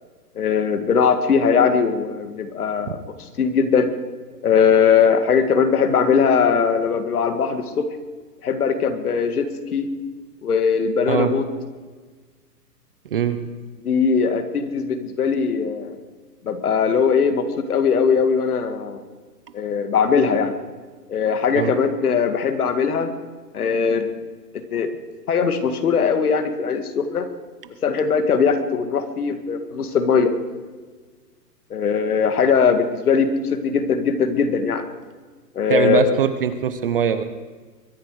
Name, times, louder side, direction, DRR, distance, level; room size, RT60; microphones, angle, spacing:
voice 1, 0.4-3.0 3.4-3.9 4.4-7.9 8.4-9.5 9.7-9.9 10.4-11.4 13.8-16.0 16.4-19.0 19.5-20.6 21.1-23.1 23.5-24.1 24.7-24.9 25.3-27.3 27.8-30.3 31.7-34.8 35.6-36.2, left 6 dB, 65° left, 9 dB, 2.1 m, -20 dB
voice 2, 35.7-37.2, right 7 dB, 35° right, 11 dB, 0.8 m, -21 dB
22.5 x 10.5 x 4.8 m, 1.4 s
hypercardioid pair, 160°, 49 cm